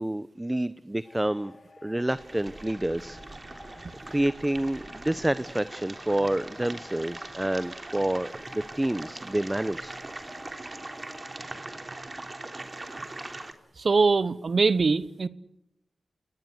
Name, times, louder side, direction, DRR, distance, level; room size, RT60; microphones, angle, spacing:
voice 1, 0.0-1.5 1.8-3.2 3.7-3.8 4.1-9.9, right 1 dB, 15° right, 0.8 m, -28 dB
sound 1, 1.0-12.0, left 4 dB, 55° left, 4.6 m, -53 dB
sound 2, 2.1-13.5, right 2 dB, 35° right, 3.4 m, -41 dB
voice 2, 13.8-15.3, right 4 dB, 65° right, 1.1 m, -23 dB
27.5 x 20.0 x 8.1 m
cardioid pair, 55°, 0 cm